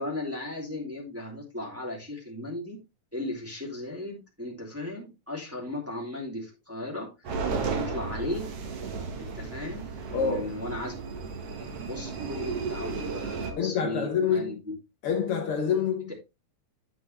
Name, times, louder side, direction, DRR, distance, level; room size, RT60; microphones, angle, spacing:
voice 1, 0.0-2.8 3.1-7.1 7.7-8.5 9.2-10.9 11.6-14.7, left 1 dB, 5° right, 2.7 m, -36 dB
sound 1, 7.2-13.5, right 5 dB, 50° right, 2.2 m, -34 dB
voice 2, 10.1-10.5 13.6-14.6 15.0-16.1, left 7 dB, 90° left, 1.2 m, -27 dB
10.5 x 6.2 x 3.3 m
omnidirectional pair, 4.0 m